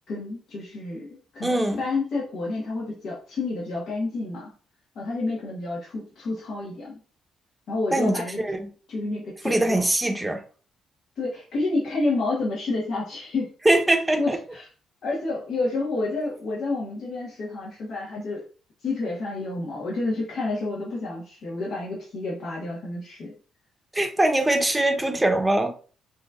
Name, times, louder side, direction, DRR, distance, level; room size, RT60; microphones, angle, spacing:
voice 1, 0.1-4.5 4.9-7.0 7.7-8.4 8.9-9.9 11.2-13.5 14.2-14.7 15.0-18.4 18.8-23.3, left 3 dB, 65° left, 1.5 m, -29 dB
voice 2, 1.4-1.8 7.9-8.7 9.4-10.4 13.6-14.4 23.9-25.7, right 1 dB, 10° right, 0.9 m, -22 dB
6.0 x 2.9 x 2.5 m
cardioid pair, 90°, 0 cm